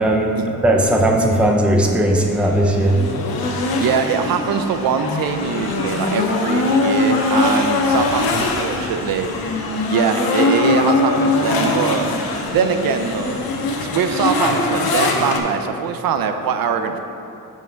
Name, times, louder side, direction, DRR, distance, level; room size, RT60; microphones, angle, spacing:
voice 1, 0.0-3.0, right 1 dB, 5° right, 1 dB, 0.4 m, -17 dB
sound 1, 2.2-15.4, left 3 dB, 85° left, 0.8 m, -21 dB
voice 2, 3.8-9.3 9.9-12.1 12.5-13.5 13.8-17.0, right 6 dB, 75° right, 7 dB, 0.5 m, -22 dB
6.3 x 5.4 x 4.4 m, 2.7 s
wide cardioid pair, 160°, 35 cm